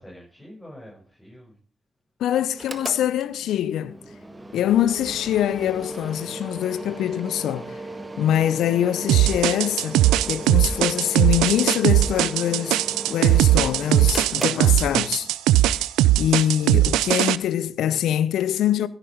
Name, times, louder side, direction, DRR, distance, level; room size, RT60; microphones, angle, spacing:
voice 1, 0.0-1.6 14.4-15.1 16.6-17.0, equal, 10° left, 7.6 m, -46 dB
voice 2, 2.2-4.0 4.5-7.8 8.2-10.0 10.3-12.8 13.1-15.3 15.6-15.8 16.2-18.9, left 11 dB, 70° left, 0.8 m, -24 dB
Mechanical fan, 2.5-15.3, right 2 dB, 25° right, 1.8 m, -37 dB
sound 1, 9.1-17.4, right 15 dB, 80° right, 0.5 m, -19 dB
16.0 x 9.2 x 5.3 m
hypercardioid pair, 40°, 0 cm